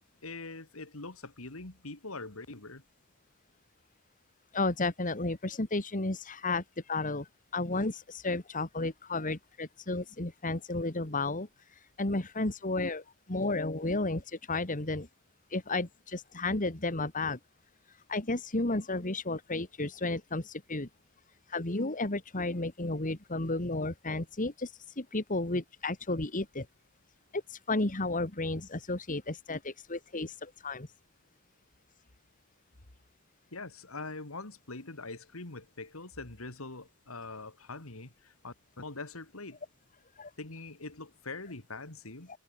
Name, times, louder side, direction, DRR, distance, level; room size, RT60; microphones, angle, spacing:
voice 1, 0.2-2.8 33.5-39.6 40.4-42.3, left 3 dB, 75° left, 2.8 m, -43 dB
voice 2, 4.5-7.3 7.5-11.5 12.0-15.1 15.5-17.4 18.1-20.9 21.5-24.7 25.0-26.7 27.3-30.9 40.2-40.3, left 2 dB, 40° left, 2.1 m, -32 dB
head